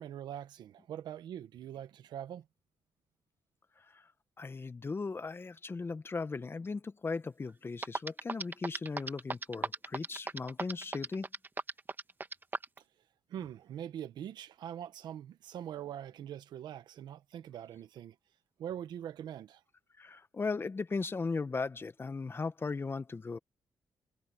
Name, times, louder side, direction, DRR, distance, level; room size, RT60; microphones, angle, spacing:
voice 1, 0.0-2.4 13.3-18.1 18.6-19.6, right 10 dB, 85° right, 1.4 m, -43 dB
voice 2, 4.4-11.2 20.0-23.4, left 4 dB, 30° left, 1.1 m, -37 dB
sound 1, 7.5-7.6 7.8-12.8, right 3 dB, 25° right, 1.6 m, -36 dB
cardioid pair, 80°, 7 cm